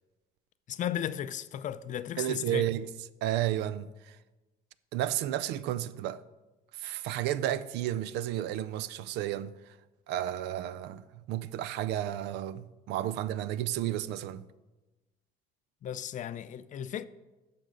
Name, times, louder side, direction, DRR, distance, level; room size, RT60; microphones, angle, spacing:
voice 1, 0.7-2.7 15.8-17.0, left 10 dB, 50° left, 0.4 m, -35 dB
voice 2, 2.2-2.9 3.2-4.2 4.9-6.2 6.7-9.5 10.1-14.5, right 12 dB, 85° right, 0.4 m, -32 dB
11.5 x 6.7 x 3.8 m
cardioid pair, 110°, 17 cm